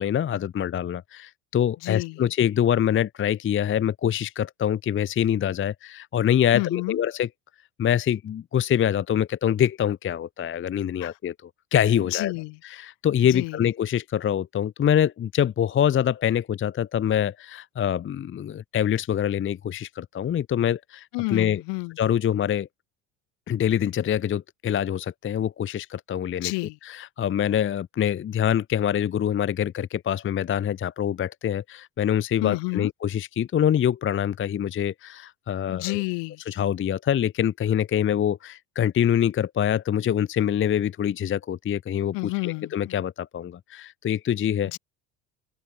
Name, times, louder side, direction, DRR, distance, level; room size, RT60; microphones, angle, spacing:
voice 1, 0.0-7.3 7.8-12.3 12.6-21.6 22.0-22.7 23.5-26.5 26.8-36.0 36.5-44.7, left 9 dB, 25° left, 0.8 m, -25 dB
voice 2, 1.8-2.3 6.5-7.0 11.0-11.1 12.1-12.6 13.3-13.6 21.1-22.0 26.4-26.8 32.4-32.9 35.7-36.4 42.1-43.0 44.7-44.8, left 29 dB, 65° left, 6.6 m, -30 dB
open air
hypercardioid pair, 70°, 45 cm